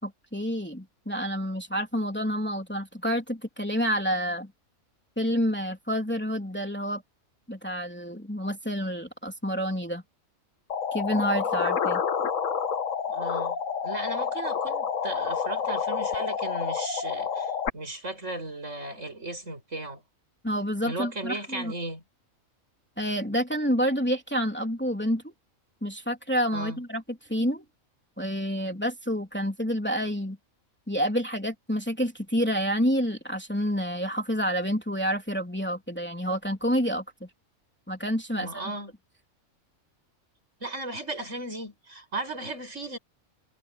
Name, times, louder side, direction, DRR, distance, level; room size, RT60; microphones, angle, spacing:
voice 1, 0.0-4.5 5.2-7.0 7.5-10.0 10.9-12.0 20.4-21.7 23.0-25.3 25.8-27.6 28.2-30.4 30.9-37.3 37.9-38.6, equal, 10° left, 3.3 m, -28 dB
sound 1, 10.7-17.7, left 6 dB, 70° left, 1.5 m, -29 dB
voice 2, 13.1-13.6 13.8-20.0 20.8-22.0 26.5-26.8 38.3-38.9 40.6-43.0, right 2 dB, 60° right, 7.7 m, -36 dB
omnidirectional pair, 1.4 m